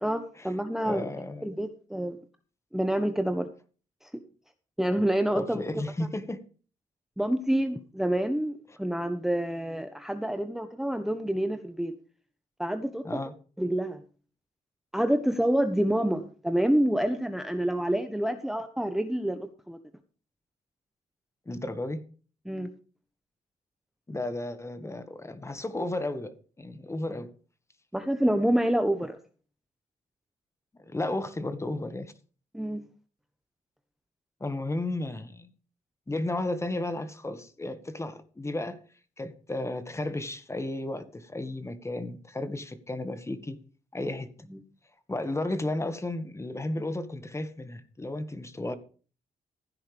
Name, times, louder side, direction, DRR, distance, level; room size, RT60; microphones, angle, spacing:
voice 1, 0.0-1.1 1.4-2.2 2.7-3.5 4.0-4.1 4.8-5.6 7.2-11.9 12.6-13.1 13.6-14.0 14.9-19.8 22.4-22.7 27.9-29.2 32.5-32.8 44.5-44.6, right 1 dB, 5° right, 1.2 m, -27 dB
voice 2, 0.8-1.7 5.3-6.4 13.0-13.3 21.5-22.0 24.1-27.3 30.9-32.1 34.4-35.5 36.1-38.8 39.2-43.6 43.9-44.3 45.1-48.8, left 2 dB, 20° left, 1.8 m, -33 dB
15.5 x 10.5 x 3.5 m
cardioid pair, 75°, 14 cm